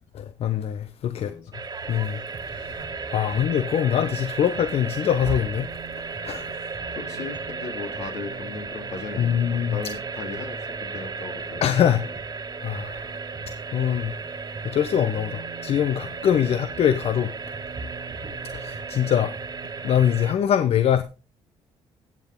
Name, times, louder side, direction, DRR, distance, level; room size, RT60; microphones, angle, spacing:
voice 1, 0.1-1.3 1.9-2.2 2.5-2.8 3.1-5.7 6.2-6.6 9.2-9.8 11.6-12.0 12.6-13.1 13.7-14.1 14.6-17.3 18.5-19.3 19.8-21.0, left 9 dB, 60° left, 0.8 m, -23 dB
sound 1, 1.5-20.3, right 4 dB, 35° right, 1.6 m, -34 dB
voice 2, 6.5-11.6 16.1-16.2, left 5 dB, 80° left, 3.3 m, -37 dB
15.0 x 7.4 x 3.7 m
supercardioid pair, 75°, 12 cm